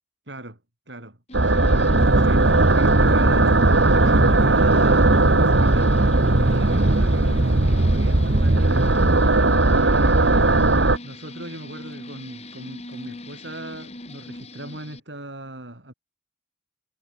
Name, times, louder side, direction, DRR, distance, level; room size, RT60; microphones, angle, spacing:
voice 1, 0.3-0.6 0.9-9.0 9.7-15.9, right 1 dB, 70° right, 6.2 m, -38 dB
sound 1, 1.3-15.0, left 1 dB, 35° left, 4.8 m, -39 dB
sound 2, 1.3-11.0, right 2 dB, 85° right, 2.1 m, -18 dB
sound 3, 1.9-9.2, right 2 dB, 50° right, 1.0 m, -23 dB
head